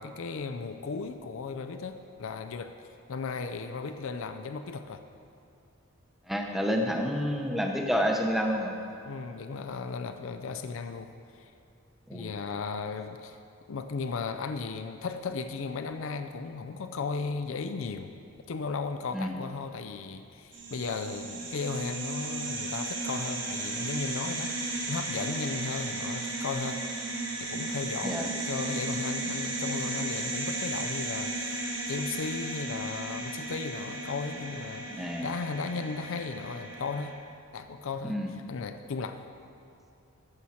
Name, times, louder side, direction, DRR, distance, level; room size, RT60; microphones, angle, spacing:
voice 1, 0.0-2.7 3.1-5.0 9.0-11.4 12.1-13.4 13.7-18.1 18.5-26.8 27.4-37.2 37.5-39.2, left 4 dB, 65° left, 8 dB, 0.4 m, -36 dB
voice 2, 6.3-8.7 12.1-12.3 19.1-19.3 28.0-28.3 34.9-35.3 38.0-38.3, equal, ahead, 1 dB, 0.7 m, -29 dB
sound 1, 20.5-37.1, right 2 dB, 55° right, 1.8 m, -35 dB
14.5 x 7.1 x 4.3 m, 2.5 s
head